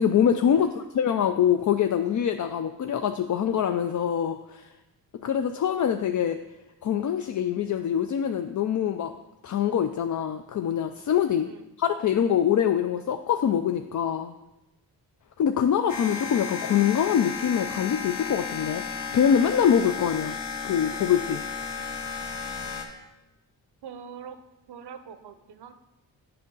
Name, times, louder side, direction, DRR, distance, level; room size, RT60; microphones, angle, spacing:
voice 1, 0.0-4.7 5.2-6.4 6.8-9.1 9.4-11.5 11.8-14.3 15.4-20.4 20.6-21.4, left 8 dB, 45° left, 6 dB, 0.4 m, -24 dB
voice 2, 0.5-0.9 11.4-11.7 23.8-24.4 24.7-25.7, right 7 dB, 65° right, 10 dB, 0.8 m, -43 dB
sound 1, 15.9-22.8, left 5 dB, 75° left, 1.1 m, -34 dB
7.7 x 5.5 x 3.9 m, 0.96 s
cardioid pair, 55°, 43 cm